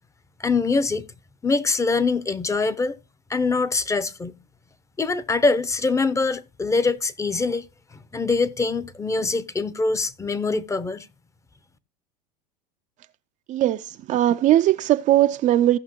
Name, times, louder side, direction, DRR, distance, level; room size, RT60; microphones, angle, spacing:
voice 1, 0.4-1.1 1.4-3.0 3.3-4.4 5.0-7.7 7.9-11.1, left 3 dB, 15° left, 0.7 m, -23 dB
voice 2, 13.5-13.8 14.1-15.8, right 13 dB, 35° right, 0.4 m, -19 dB
16.0 x 5.7 x 3.0 m
hypercardioid pair, 95°, 21 cm